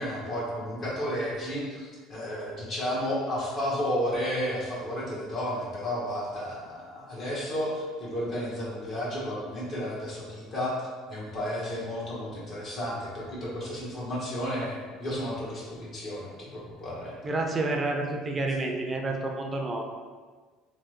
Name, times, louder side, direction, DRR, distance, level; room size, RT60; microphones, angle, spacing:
voice 1, 0.0-10.7 11.1-17.2, equal, 40° left, -6 dB, 1.3 m, -32 dB
voice 2, 17.2-19.8, right 2 dB, 30° right, 2 dB, 0.4 m, -29 dB
3.2 x 2.1 x 3.1 m, 1.5 s
supercardioid pair, 80°, 0 cm